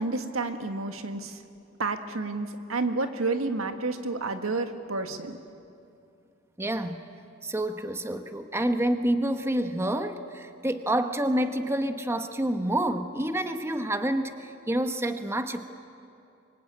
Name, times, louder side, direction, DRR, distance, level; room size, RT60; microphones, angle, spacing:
voice 1, 0.0-1.4 1.8-5.4, right 3 dB, 85° right, 7 dB, 1.7 m, -30 dB
voice 2, 6.6-7.0 7.4-15.6, right 1 dB, 15° right, 7 dB, 1.0 m, -28 dB
26.0 x 24.0 x 8.8 m, 2.6 s
head